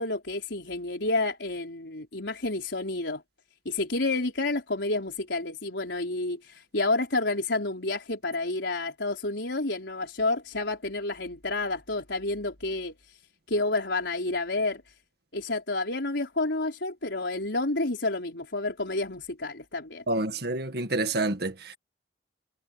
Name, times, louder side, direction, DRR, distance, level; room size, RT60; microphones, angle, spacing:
voice 1, 0.0-3.2 3.6-13.2 13.5-14.8 15.3-20.0, left 2 dB, 90° left, 4.3 m, -30 dB
voice 2, 20.1-21.8, right 2 dB, 60° right, 1.9 m, -28 dB
head